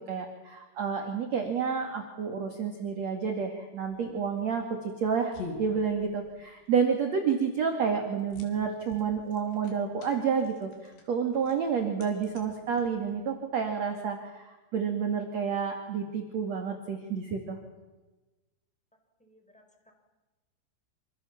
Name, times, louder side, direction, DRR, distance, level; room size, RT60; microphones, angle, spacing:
voice 1, 0.0-17.6, right 6 dB, 45° right, 4 dB, 2.9 m, -30 dB
sound 1, 3.8-13.4, left 3 dB, 65° left, 5.9 m, -48 dB
voice 2, 19.2-19.9, left 1 dB, ahead, 4 dB, 4.6 m, -61 dB
28.0 x 27.0 x 7.3 m, 1.2 s
omnidirectional pair, 5.4 m